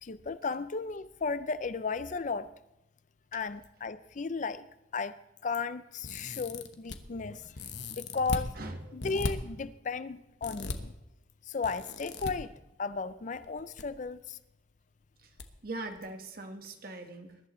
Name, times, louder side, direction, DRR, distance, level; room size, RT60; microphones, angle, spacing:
voice 1, 0.0-2.5 3.3-4.6 4.9-5.1 5.4-7.5 8.0-8.5 8.9-10.9 11.5-12.5 12.8-14.4, left 4 dB, 45° left, 14 dB, 0.5 m, -34 dB
sound 1, 6.0-7.0 7.5-8.5 9.0-9.3 10.4-10.8 11.6-12.3 13.4-13.8 14.1-14.2 15.4-15.5 15.9-16.0, left 3 dB, 70° left, 1.0 m, -37 dB
voice 2, 8.5-9.0 15.2-15.3 15.6-17.4, right 2 dB, 55° right, 5 dB, 1.5 m, -41 dB
22.0 x 11.5 x 3.1 m, 0.91 s
head